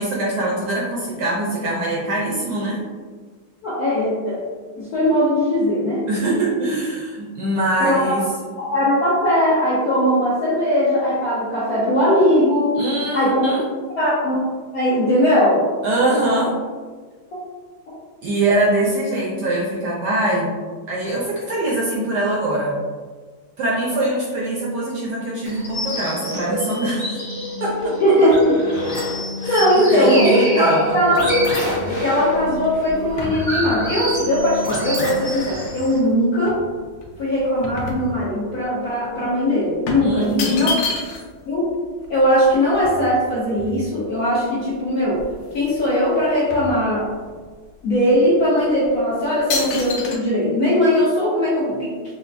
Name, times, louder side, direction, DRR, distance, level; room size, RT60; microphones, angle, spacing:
voice 1, 0.0-2.8 6.1-8.3 12.8-13.6 15.8-16.5 18.2-20.5 20.9-22.8 23.6-27.2 27.6-27.9 29.4-31.0 40.0-40.7, right 1 dB, 70° right, -4 dB, 1.0 m, -22 dB
voice 2, 3.6-4.4 4.8-6.0 7.8-8.2 8.6-12.7 13.1-13.4 14.0-14.4 14.7-15.6 28.0-28.6 29.4-31.2 31.6-36.6 37.2-40.7 41.5-41.7 42.1-45.2 45.5-47.1 47.8-52.0, equal, 65° left, -8 dB, 0.9 m, -19 dB
sound 1, 25.4-36.0, left 1 dB, 40° left, 1.1 m, -26 dB
sound 2, 31.1-36.0 36.5-38.6 38.9-39.1 39.9-41.4 41.7-41.8 42.0-44.2 44.7-44.8 45.1-45.9 46.1-47.4 47.9-48.1 48.7-49.0 49.5-50.2, left 3 dB, 80° left, 1.5 m, -31 dB
5.6 x 2.0 x 2.5 m, 1.5 s
omnidirectional pair, 2.3 m